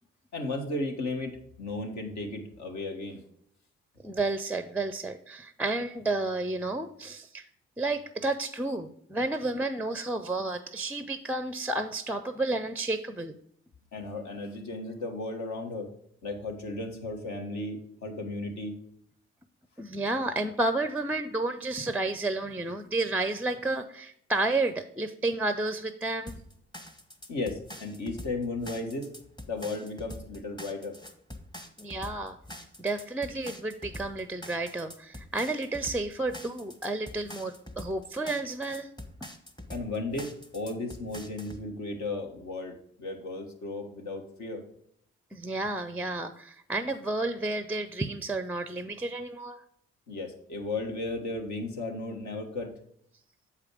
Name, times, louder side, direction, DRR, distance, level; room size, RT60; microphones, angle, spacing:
voice 1, 0.3-3.2 13.9-15.9 16.2-18.8 27.3-29.1 29.5-31.0 39.7-44.6 50.1-52.8, left 2 dB, 65° left, 3 dB, 1.4 m, -35 dB
voice 2, 4.0-7.4 7.8-13.3 19.8-26.4 31.8-32.4 32.8-38.9 45.3-49.6, right 2 dB, 5° right, 11 dB, 0.5 m, -31 dB
sound 1, 26.3-41.6, left 1 dB, 15° left, 1.1 m, -44 dB
7.2 x 4.9 x 4.8 m, 0.69 s
hypercardioid pair, 40°, 31 cm